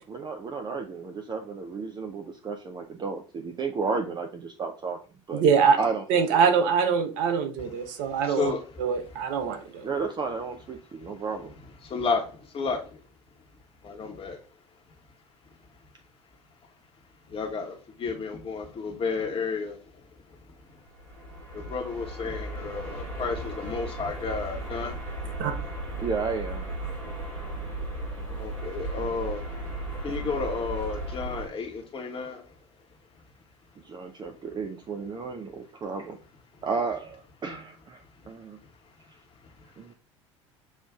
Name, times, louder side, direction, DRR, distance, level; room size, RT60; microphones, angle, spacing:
voice 1, 0.1-5.0 5.3-5.4 5.8-6.5 9.8-11.5 26.0-26.7 33.8-36.2 36.6-38.6 39.8-39.9, right 4 dB, 30° right, 4 dB, 0.5 m, -33 dB
voice 2, 5.3-5.8 6.1-8.5 8.8-9.9 25.4-25.5, right 6 dB, 65° right, 7 dB, 0.8 m, -23 dB
voice 3, 7.6-9.1 9.4-9.6 11.8-13.0 13.8-14.4 17.3-20.6 21.5-25.3 28.4-32.5 38.6-38.7 39.4-39.5, left 4 dB, 35° left, 1 dB, 1.1 m, -33 dB
sound 1, 20.8-31.5, right 1 dB, 90° right, 1.2 m, -36 dB
7.1 x 2.5 x 2.3 m, 0.37 s
hypercardioid pair, 70°, 16 cm